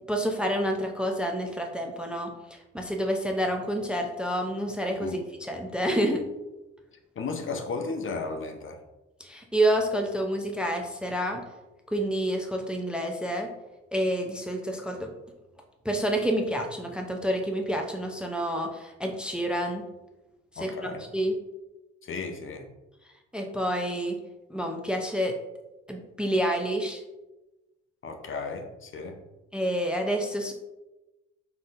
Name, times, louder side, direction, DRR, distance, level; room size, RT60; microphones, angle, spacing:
voice 1, 0.1-6.2 9.2-11.4 11.9-13.5 13.9-15.1 15.8-19.8 20.6-21.4 23.3-24.2 24.5-25.4 25.9-27.0 29.5-30.5, equal, 5° right, 3 dB, 0.6 m, -28 dB
voice 2, 7.2-8.8 20.6-21.0 22.0-22.7 28.0-29.2, left 4 dB, 40° left, 5 dB, 0.7 m, -34 dB
4.0 x 3.7 x 2.6 m, 1.0 s
hypercardioid pair, 55°, 32 cm